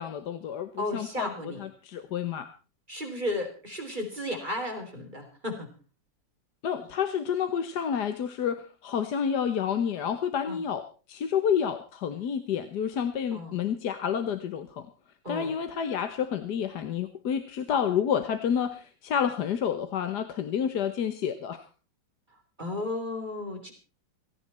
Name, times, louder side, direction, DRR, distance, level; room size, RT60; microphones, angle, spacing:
voice 1, 0.0-2.5 6.6-10.8 11.1-14.9 15.3-21.7, left 8 dB, 60° left, 9 dB, 1.5 m, -29 dB
voice 2, 0.8-1.6 2.9-5.7 10.5-10.6 13.3-13.6 15.2-15.5 22.6-23.7, left 1 dB, 25° right, 3 dB, 3.6 m, -34 dB
17.0 x 17.0 x 4.3 m, 0.36 s
omnidirectional pair, 2.1 m